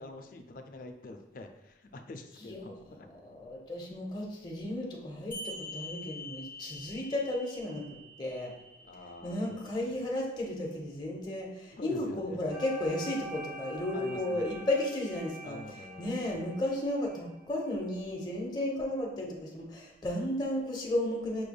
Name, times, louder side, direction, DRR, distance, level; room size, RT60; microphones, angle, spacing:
voice 1, 0.0-3.1 8.8-9.6 11.7-12.4 13.9-14.5 15.4-16.3, left 2 dB, 50° left, 5 dB, 0.4 m, -46 dB
voice 2, 2.4-7.8 8.2-8.5 9.2-21.5, left 1 dB, 25° left, -1 dB, 0.8 m, -34 dB
sound 1, 5.3-10.3, left 1 dB, 10° left, 1.3 m, -46 dB
sound 2, 12.5-17.6, right 1 dB, 30° right, 1.0 m, -46 dB
5.8 x 3.3 x 2.2 m, 0.93 s
head